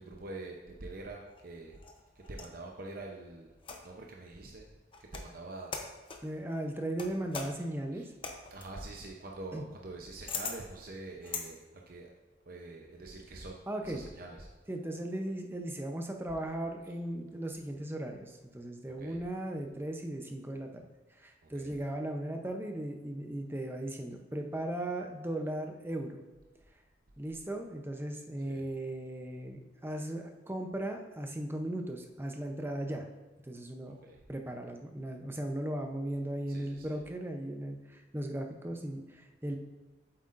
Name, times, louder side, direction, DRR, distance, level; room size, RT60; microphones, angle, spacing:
voice 1, 0.0-1.8 2.1-3.5 3.8-4.7 5.0-5.8 7.9-8.1 8.5-12.1 12.5-14.5 18.9-19.2 21.4-21.7 28.4-28.6 33.9-34.2 36.5-37.0, right 2 dB, 50° right, 0 dB, 0.7 m, -45 dB
sound 1, 1.3-2.6 3.6-4.1 4.9-5.3 5.7-6.3 7.0-11.5, left 5 dB, 30° left, 0.7 m, -42 dB
voice 2, 6.2-8.1 9.5-9.6 13.7-14.0 14.7-20.8 21.1-26.2 27.2-33.1 33.4-34.0 34.3-39.6, right 1 dB, 10° right, 3 dB, 0.7 m, -37 dB
8.3 x 7.8 x 2.5 m, 1.2 s
head